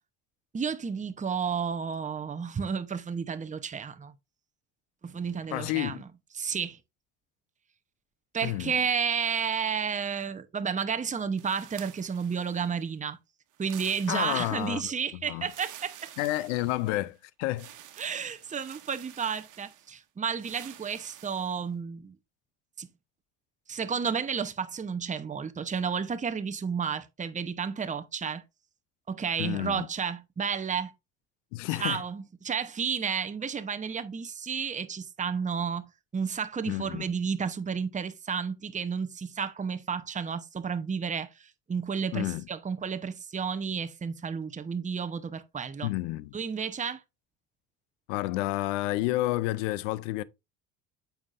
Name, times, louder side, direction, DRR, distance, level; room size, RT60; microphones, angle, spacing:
voice 1, 0.5-4.1 5.0-6.0 6.3-6.8 8.3-13.2 13.6-16.0 18.0-22.1 22.8-22.9 23.7-28.4 29.1-30.9 31.8-45.9 46.3-47.0, right 6 dB, 20° right, 0.9 m, -32 dB
voice 2, 5.5-6.0 8.4-8.8 14.1-15.5 16.2-17.7 29.4-29.9 31.5-32.0 36.7-37.0 42.1-42.5 45.8-46.4 48.1-50.2, left 17 dB, 80° left, 0.6 m, -30 dB
sound 1, 11.4-12.9 13.5-14.9 15.4-17.1 17.5-19.9 20.4-21.6, right 11 dB, 55° right, 1.4 m, -49 dB
8.6 x 5.8 x 2.6 m
hypercardioid pair, 75°, 36 cm